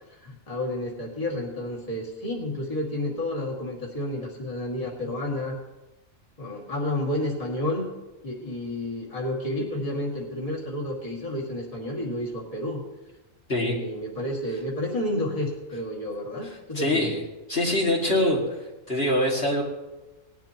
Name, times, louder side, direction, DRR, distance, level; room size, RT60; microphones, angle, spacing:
voice 1, 0.1-5.6 6.4-7.9 8.2-12.8 13.6-17.1, left 1 dB, 25° left, -3 dB, 2.3 m, -30 dB
voice 2, 16.7-17.2 17.5-18.6 18.9-19.6, left 1 dB, 45° left, -4 dB, 2.5 m, -23 dB
19.0 x 12.0 x 3.0 m, 1.0 s
omnidirectional pair, 1.4 m